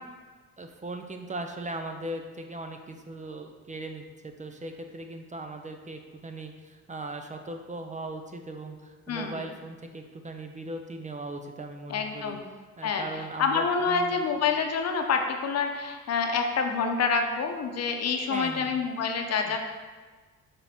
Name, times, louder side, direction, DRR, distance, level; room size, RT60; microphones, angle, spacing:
voice 1, 0.6-12.4 12.8-14.2 18.3-18.8 19.4-19.6, right 2 dB, 25° right, 5 dB, 0.5 m, -39 dB
voice 2, 9.1-9.4 11.9-12.4 12.8-13.1 13.4-19.6, left 5 dB, 55° left, 4 dB, 0.8 m, -27 dB
6.8 x 3.5 x 4.3 m, 1.4 s
cardioid pair, 90°, 30 cm